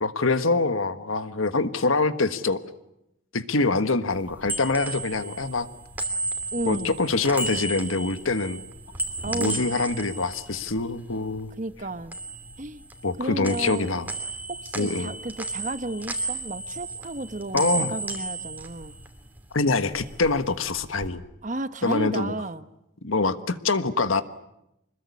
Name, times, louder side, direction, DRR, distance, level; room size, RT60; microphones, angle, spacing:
voice 1, 0.0-2.6 3.3-5.7 6.6-8.6 9.3-11.5 13.0-14.1 14.7-15.1 17.5-17.9 19.5-21.2 21.8-22.3 23.0-24.2, left 3 dB, 80° left, 11 dB, 1.4 m, -25 dB
sound 1, 4.2-11.5 11.8-13.2 13.4-19.4 19.8-21.1, right 2 dB, 10° right, 2.6 m, -34 dB
voice 2, 6.5-6.9 9.2-9.7 11.6-12.1 12.6-12.8 13.2-14.0 14.5-18.9 21.4-22.7, right 2 dB, 35° right, 12 dB, 1.1 m, -33 dB
25.5 x 21.0 x 9.7 m, 0.85 s
head